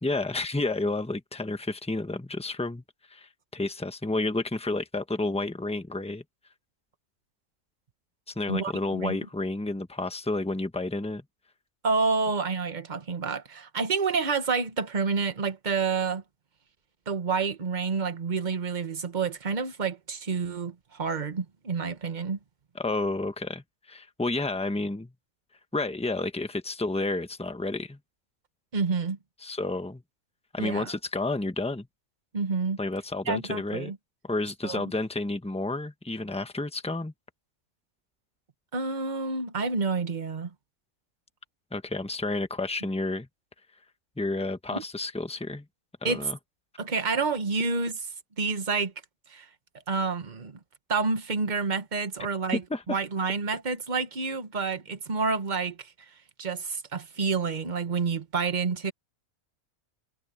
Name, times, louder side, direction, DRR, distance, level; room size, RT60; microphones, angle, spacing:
voice 1, 0.0-2.8 3.1-6.2 8.3-11.2 22.7-25.1 25.7-28.0 29.4-30.0 30.5-31.9 32.8-33.9 34.2-37.1 41.7-43.3 44.2-45.7 46.0-46.4 52.7-53.0, left 2 dB, 5° left, 1.1 m, -30 dB
voice 2, 8.5-9.2 11.8-16.2 17.1-22.4 28.7-29.2 30.6-30.9 32.3-32.8 33.3-34.0 34.6-34.8 38.7-40.5 44.7-44.8 46.0-46.3 46.8-48.0 48.4-48.9 49.3-49.5 49.9-50.6 50.9-52.6 52.9-55.9 56.4-58.9, right 4 dB, 35° right, 1.4 m, -29 dB
omnidirectional pair, 1.5 m